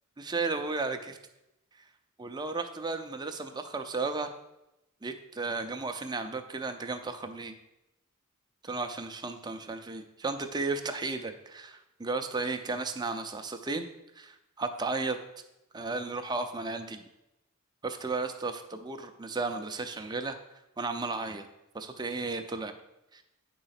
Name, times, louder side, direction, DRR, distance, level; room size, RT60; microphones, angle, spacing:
voice 1, 0.2-1.2 2.2-4.3 5.0-7.5 8.6-13.9 14.1-15.2 15.7-17.0 17.8-20.4 20.8-21.5 21.7-22.7 23.1-23.2, right 3 dB, 20° right, 6 dB, 0.6 m, -34 dB
9.6 x 3.9 x 5.8 m, 0.89 s
head